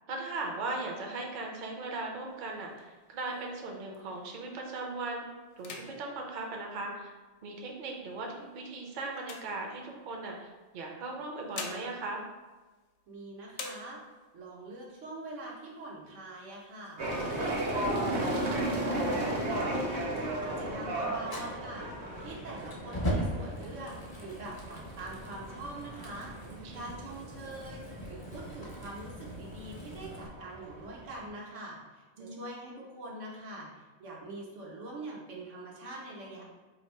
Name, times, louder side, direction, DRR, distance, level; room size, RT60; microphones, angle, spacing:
voice 1, 0.1-5.3 5.6-7.1 7.4-12.2 26.6-26.9 32.2-32.4, right 3 dB, 50° right, 1 dB, 0.6 m, -38 dB
sound 1, 2.3-4.5 4.9-5.2 5.5-7.4 8.1-10.2 11.1-13.2 13.5-14.4 14.8-14.9 15.2-15.8 16.3-17.2, left 4 dB, 80° left, 0.9 m, -47 dB
voice 2, 13.1-14.0 14.3-17.0 17.3-19.4 19.8-26.3 26.7-36.5, right 2 dB, 90° right, -3 dB, 1.2 m, -44 dB
sound 2, 17.0-31.3, right 1 dB, 70° right, 1.0 m, -35 dB
Fire, 21.2-30.3, equal, 25° left, 0.5 m, -40 dB
2.8 x 2.6 x 4.3 m, 1.2 s
omnidirectional pair, 1.2 m